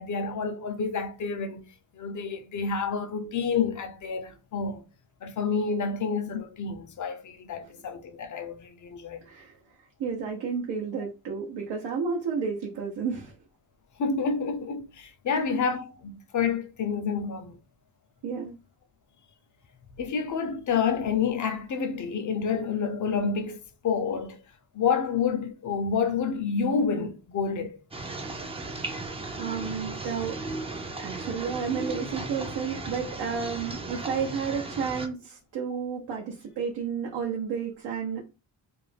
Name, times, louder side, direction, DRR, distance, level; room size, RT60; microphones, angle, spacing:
voice 1, 0.0-1.6 1.9-4.8 5.2-9.2 14.0-17.6 20.0-24.4 24.7-27.8 29.6-29.7, left 5 dB, 45° left, 0.6 m, -29 dB
voice 2, 9.2-9.5 10.0-13.3 18.2-18.6 29.4-30.4 31.0-38.2, right 6 dB, 75° right, 0.8 m, -31 dB
sound 1, 27.9-35.1, right 3 dB, 15° right, 0.5 m, -36 dB
2.6 x 2.1 x 3.2 m
cardioid pair, 70°, 44 cm